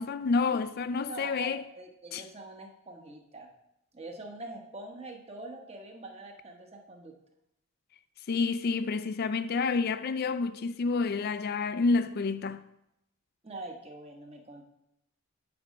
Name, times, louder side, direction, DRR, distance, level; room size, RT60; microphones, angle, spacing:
voice 1, 0.0-1.6 2.1-2.2 8.3-12.6, left 4 dB, 45° left, 0.4 m, -29 dB
voice 2, 1.1-3.5 3.9-7.1 11.2-11.3 13.4-14.6, right 2 dB, 30° right, 1.1 m, -44 dB
9.5 x 4.2 x 6.3 m
head